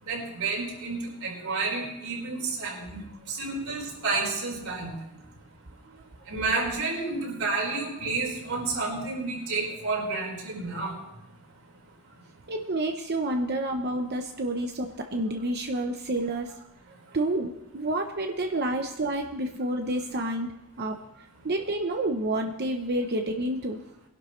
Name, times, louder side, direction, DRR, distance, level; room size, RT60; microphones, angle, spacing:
voice 1, 0.1-3.0 3.3-4.9 6.3-11.0, right 3 dB, 70° right, -2 dB, 4.7 m, -30 dB
voice 2, 12.5-16.6 17.1-20.5 20.8-23.8, right 1 dB, 50° right, 4 dB, 0.9 m, -29 dB
22.5 x 11.5 x 3.2 m, 0.87 s
head